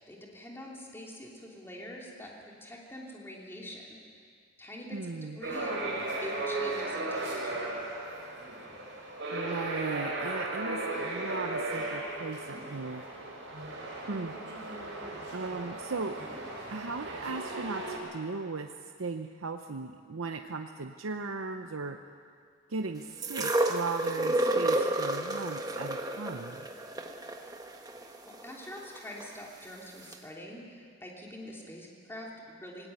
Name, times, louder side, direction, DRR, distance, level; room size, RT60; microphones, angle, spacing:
voice 1, 0.1-4.2 4.6-5.8 6.2-7.8 28.2-32.9, left 1 dB, 10° left, -2 dB, 3.0 m, -45 dB
voice 2, 4.9-5.4 9.3-13.0 14.1-14.4 15.3-16.2 16.7-22.0 22.7-26.7, right 4 dB, 80° right, 6 dB, 0.8 m, -37 dB
sound 1, 5.4-18.0, right 2 dB, 60° right, 5.2 m, -36 dB
sound 2, 23.2-29.3 30.1-30.2, right 1 dB, 20° right, 1.2 m, -31 dB
19.0 x 18.0 x 9.1 m, 2.2 s
head